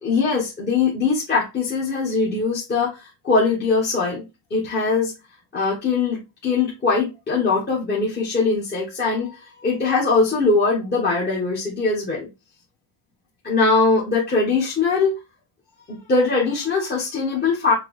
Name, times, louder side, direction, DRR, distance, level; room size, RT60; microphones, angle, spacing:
voice 1, 0.0-4.2 4.5-5.1 5.5-12.3 13.4-15.2 15.9-17.7, left 4 dB, 20° left, 1.1 m, -21 dB
5.9 x 2.2 x 3.1 m
cardioid pair, 160°, 49 cm